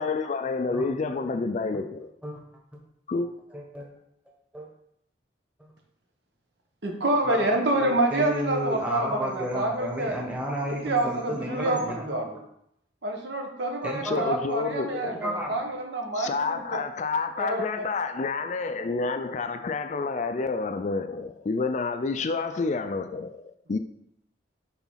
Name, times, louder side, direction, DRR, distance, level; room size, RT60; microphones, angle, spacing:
voice 1, 0.0-2.1 3.1-3.3 14.0-15.2 16.2-23.8, left 4 dB, 40° left, 0.4 m, -29 dB
voice 2, 0.7-1.1 2.2-2.4 3.5-3.8 4.5-4.7 7.2-12.2 13.8-14.3 14.7-15.6, equal, 5° right, 1.3 m, -33 dB
voice 3, 6.8-10.2 10.8-12.3 13.0-16.8 17.4-17.8, right 1 dB, 70° right, 1.3 m, -27 dB
6.0 x 3.9 x 5.7 m
head